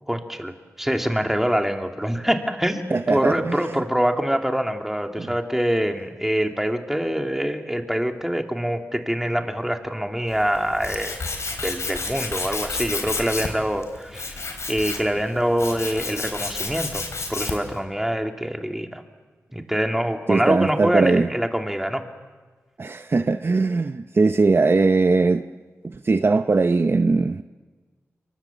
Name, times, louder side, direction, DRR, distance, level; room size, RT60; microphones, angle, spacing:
voice 1, 0.1-11.2 11.6-19.0 19.5-22.0, equal, 5° right, 2.7 m, -25 dB
voice 2, 2.9-3.6 5.2-5.3 20.3-21.3 22.8-25.4 26.0-27.4, right 3 dB, 50° right, 0.8 m, -20 dB
Tools, 10.3-17.8, left 3 dB, 65° left, 4.1 m, -31 dB
27.5 x 23.5 x 7.3 m
cardioid pair, 50°, 5 cm